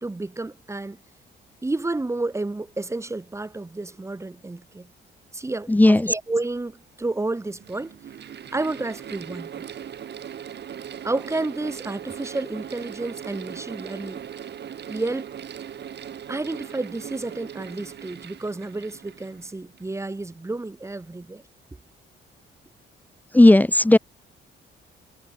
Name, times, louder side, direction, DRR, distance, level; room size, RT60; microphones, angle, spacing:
voice 1, 0.0-1.0 1.6-4.9 5.3-8.0 8.5-9.6 11.0-14.2 14.9-15.3 16.3-21.4, right 2 dB, 15° right, 1.3 m, -30 dB
voice 2, 5.7-6.1 23.3-24.0, left 1 dB, 10° left, 0.5 m, -14 dB
Mechanical fan, 6.4-6.5 7.3-20.0, right 9 dB, 60° right, 4.9 m, -39 dB
cardioid pair, 90°, 20 cm